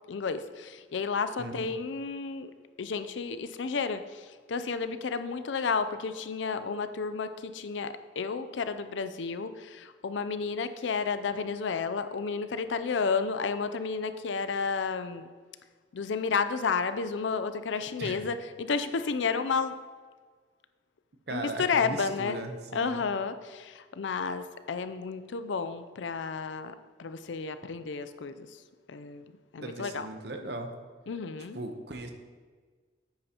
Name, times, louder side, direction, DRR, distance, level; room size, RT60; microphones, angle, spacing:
voice 1, 0.1-2.5 2.8-15.3 15.9-19.8 21.3-22.4 22.7-28.6 28.9-30.1 31.1-31.6, left 5 dB, 80° left, 11 dB, 0.5 m, -32 dB
voice 2, 1.4-1.7 18.0-18.2 21.3-23.0 29.6-30.7 31.5-32.1, right 2 dB, 60° right, 5 dB, 0.9 m, -38 dB
9.4 x 8.6 x 2.9 m, 1.5 s
head